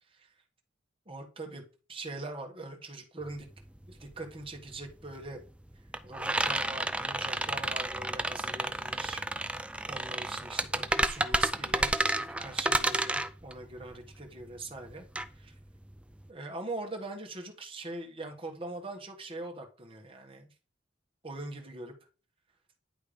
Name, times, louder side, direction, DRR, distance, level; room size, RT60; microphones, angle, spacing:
voice 1, 1.1-1.6 1.9-3.5 3.9-5.4 6.0-9.2 9.9-15.1 15.3-15.5 16.3-20.5 21.2-21.9, right 2 dB, 30° right, 1.4 m, -42 dB
sound 1, 3.2-3.3 3.6-16.3, right 1 dB, 5° right, 0.3 m, -31 dB
10.0 x 3.5 x 5.1 m
head